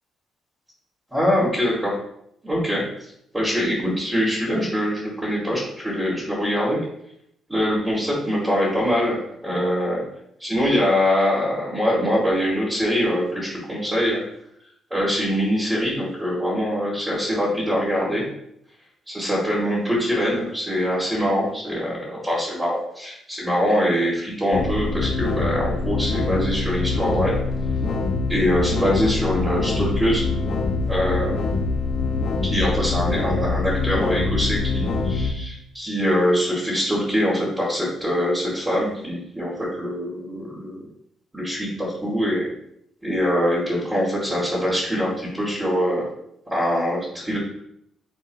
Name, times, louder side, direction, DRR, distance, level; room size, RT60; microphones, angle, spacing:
voice 1, 1.1-1.9 2.4-2.8 3.3-6.8 7.5-10.0 10.4-14.2 14.9-18.2 19.1-27.4 28.3-30.3 30.8-31.4 32.4-40.8 41.3-42.5 43.0-46.1 46.5-47.4, equal, 10° right, -9 dB, 2.5 m, -23 dB
sound 1, 24.5-35.3, left 3 dB, 70° left, 0.9 m, -24 dB
9.7 x 3.7 x 3.1 m, 0.75 s
cardioid pair, 90°, 0 cm